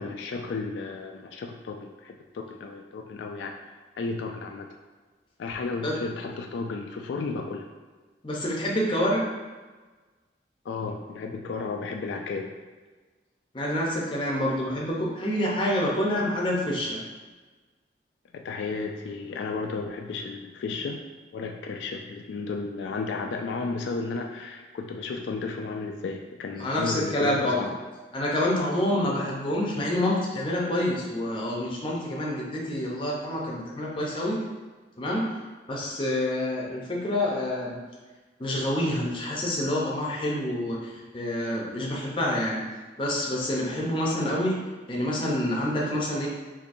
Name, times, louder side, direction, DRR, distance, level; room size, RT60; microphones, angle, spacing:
voice 1, 0.0-3.6 4.0-4.7 5.4-7.7 10.7-12.5 18.3-21.0 21.3-27.8, left 4 dB, 80° left, 3 dB, 0.3 m, -33 dB
voice 2, 8.2-9.2 13.5-17.0 26.6-27.6 28.1-34.4 35.0-35.3 35.7-37.8 38.4-42.6 43.0-44.6 44.9-46.3, left 1 dB, 30° left, -3 dB, 0.6 m, -27 dB
4.0 x 2.6 x 2.5 m, 1.3 s
head